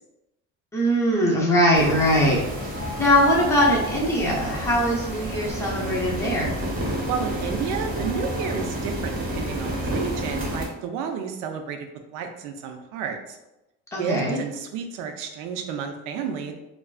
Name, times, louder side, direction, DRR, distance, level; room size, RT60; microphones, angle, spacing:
voice 1, 0.7-2.5 3.0-6.5 13.9-14.4, equal, 10° left, -4 dB, 0.5 m, -21 dB
sound 1, 1.7-10.7, equal, 30° right, 0.7 m, -30 dB
voice 2, 7.1-11.9 12.1-13.4 14.0-16.5, right 6 dB, 80° right, 5 dB, 0.5 m, -31 dB
2.4 x 2.3 x 2.3 m, 0.94 s
cardioid pair, 145°, 30 cm